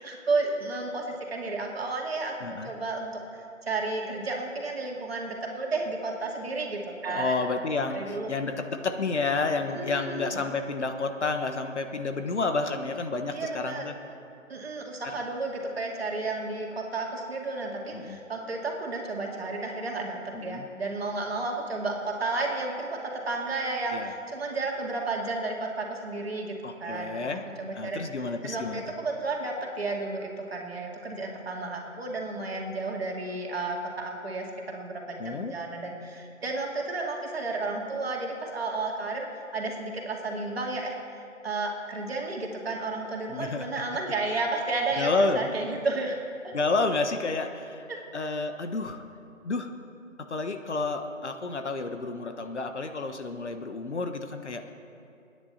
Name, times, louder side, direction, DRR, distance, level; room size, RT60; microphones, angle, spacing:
voice 1, 0.0-2.3 2.6-7.3 7.9-8.3 9.7-10.4 13.3-13.9 14.5-27.2 27.6-28.0 28.4-41.0 41.4-46.2 46.4-46.5 47.9-48.0, right 3 dB, 50° right, 0 dB, 2.3 m, -32 dB
voice 2, 2.4-2.7 7.0-13.9 17.9-18.2 20.3-20.7 23.9-24.1 26.6-27.4 27.7-28.8 35.2-35.5 43.3-43.7 45.0-45.5 46.5-47.9 48.1-49.0 49.4-49.7 50.2-54.7, left 3 dB, 60° left, 7 dB, 1.2 m, -30 dB
29.0 x 9.9 x 4.2 m, 2.6 s
figure-of-eight pair, 150°, 40 cm